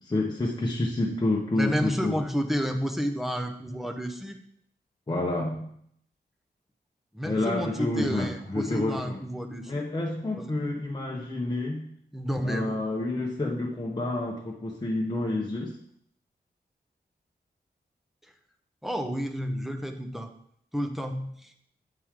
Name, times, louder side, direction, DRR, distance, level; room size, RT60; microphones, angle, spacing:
voice 1, 0.0-2.1 5.1-5.7 7.2-9.2 9.6-11.9 12.4-15.8, left 2 dB, 25° left, -2 dB, 1.1 m, -29 dB
voice 2, 1.6-4.4 7.1-9.8 10.3-10.5 12.1-12.8 18.8-20.3 20.7-21.5, equal, ahead, 4 dB, 0.9 m, -31 dB
8.8 x 8.0 x 3.7 m, 0.69 s
wide cardioid pair, 135°, 18 cm